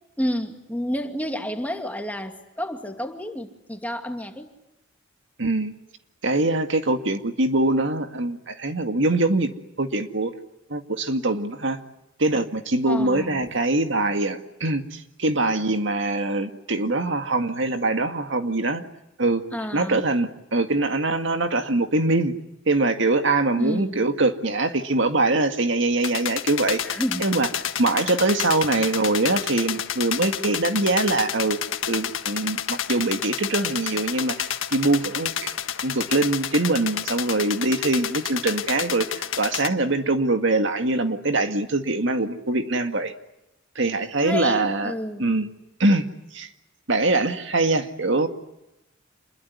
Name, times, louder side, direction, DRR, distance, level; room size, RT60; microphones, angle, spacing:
voice 1, 0.2-4.5 12.8-13.5 19.5-20.1 23.6-24.1 26.8-27.3 27.9-28.0 44.2-45.4, equal, 10° left, 4 dB, 2.5 m, -30 dB
voice 2, 5.4-5.7 6.2-9.5 9.8-10.3 10.7-11.8 12.2-18.8 19.2-19.4 19.7-22.3 22.7-26.8 27.2-27.5 27.8-31.6 31.9-35.6 35.8-43.1 43.8-44.9 45.2-45.5 45.8-46.0 46.3-46.5 46.9-48.3, right 2 dB, 65° right, 7 dB, 2.0 m, -23 dB
sound 1, 26.0-39.7, left 9 dB, 85° left, 1.5 m, -30 dB
28.0 x 22.0 x 9.7 m, 0.90 s
head